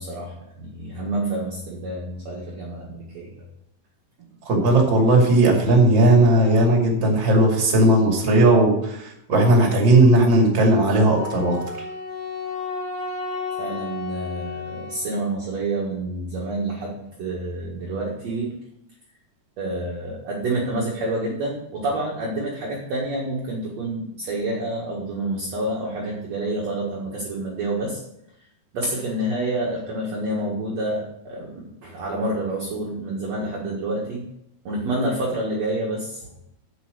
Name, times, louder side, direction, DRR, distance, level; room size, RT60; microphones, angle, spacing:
voice 1, 0.0-3.4 13.6-18.5 19.6-28.0 28.7-34.2 34.6-36.3, right 2 dB, 55° right, -4 dB, 2.5 m, -28 dB
voice 2, 4.5-11.6, right 1 dB, 35° right, 0 dB, 2.8 m, -17 dB
Wind instrument woodwind instrument, 11.2-15.4, left 4 dB, 65° left, 4.0 m, -32 dB
8.1 x 7.5 x 6.6 m, 0.79 s
omnidirectional pair, 4.2 m